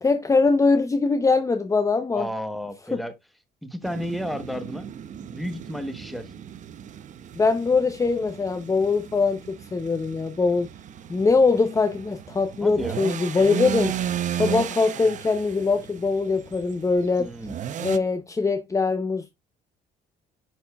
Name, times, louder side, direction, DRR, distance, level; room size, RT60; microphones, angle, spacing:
voice 1, 0.0-2.3 2.9-3.0 7.3-9.4 9.7-10.7 11.1-13.9 14.3-17.3 17.8-19.3, left 4 dB, 20° left, 0.7 m, -22 dB
voice 2, 2.1-3.1 3.6-4.9 5.2-6.4 12.6-13.0 17.2-17.6, equal, ahead, 1.1 m, -32 dB
sound 1, 3.8-18.0, right 10 dB, 50° right, 0.6 m, -35 dB
9.9 x 4.3 x 2.3 m
cardioid pair, 110°, 17 cm